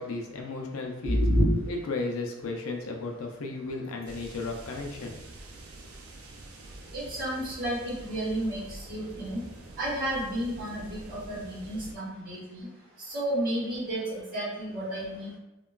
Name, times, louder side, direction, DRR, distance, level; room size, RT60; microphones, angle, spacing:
voice 1, 0.0-1.2 1.7-5.2, left 3 dB, 80° left, 2 dB, 0.5 m, -34 dB
voice 2, 1.0-1.6 6.9-9.4 9.8-12.7 13.1-15.4, equal, 40° right, -7 dB, 1.1 m, -30 dB
sound 1, 4.0-11.9, right 2 dB, 80° right, 0.4 m, -46 dB
2.9 x 2.2 x 2.3 m, 0.96 s
head